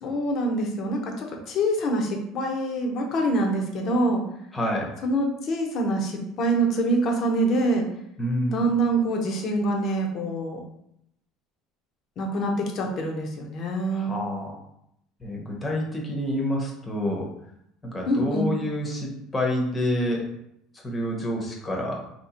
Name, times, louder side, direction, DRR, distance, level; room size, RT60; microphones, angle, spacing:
voice 1, 0.0-4.2 5.0-7.9 8.5-10.6 12.2-14.2 18.1-18.5, right 1 dB, 45° left, 2 dB, 0.9 m, -25 dB
voice 2, 4.5-4.9 8.2-8.7 13.9-14.5 15.2-17.3 17.9-20.2 20.7-22.0, left 1 dB, 15° left, -1 dB, 1.0 m, -28 dB
3.1 x 2.9 x 4.3 m, 0.77 s
cardioid pair, 135°, 0 cm